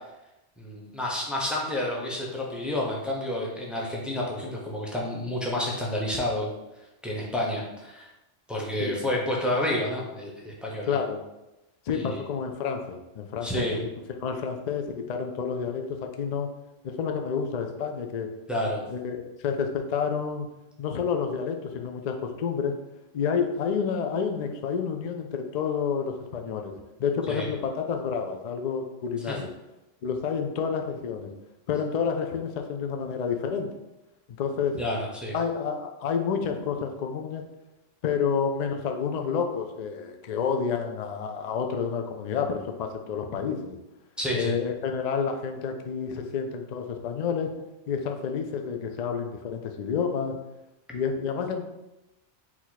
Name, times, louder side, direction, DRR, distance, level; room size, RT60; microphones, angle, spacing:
voice 1, 0.6-6.5 7.0-8.1 8.5-11.0 11.9-12.2 13.4-13.8 18.5-18.8 27.3-27.5 29.3-29.4 34.8-35.3 44.2-44.5, left 1 dB, ahead, -3 dB, 0.6 m, -30 dB
voice 2, 10.9-11.2 11.9-13.9 14.2-16.5 16.8-18.3 18.9-20.5 20.8-22.8 23.1-26.7 27.0-29.5 30.0-31.3 31.7-33.7 34.4-34.8 35.3-37.4 38.0-43.8 44.3-47.5 47.9-50.4 50.9-51.6, left 6 dB, 60° left, 4 dB, 0.4 m, -29 dB
4.6 x 2.8 x 4.0 m, 0.97 s
omnidirectional pair, 1.3 m